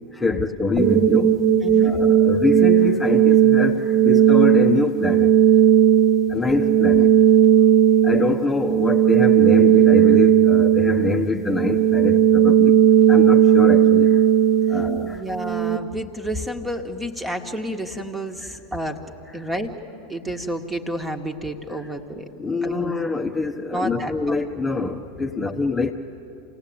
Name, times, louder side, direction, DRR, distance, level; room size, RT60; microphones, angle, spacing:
voice 1, 0.1-1.4 1.8-5.4 6.3-7.2 8.0-12.8 13.1-14.2 14.7-15.2 19.4-19.5 21.7-21.8 22.4-25.9, left 3 dB, 10° left, 0 dB, 1.2 m, -25 dB
sound 1, 0.8-15.8, right 9 dB, 25° right, 1.5 m, -16 dB
voice 2, 1.6-2.0 14.7-14.8 15.0-19.0 19.3-19.7 20.1-22.3 22.6-22.9 23.7-24.4, right 1 dB, 10° right, 5 dB, 1.8 m, -30 dB
27.5 x 17.5 x 8.9 m, 2.9 s
hypercardioid pair, 90°, 0 cm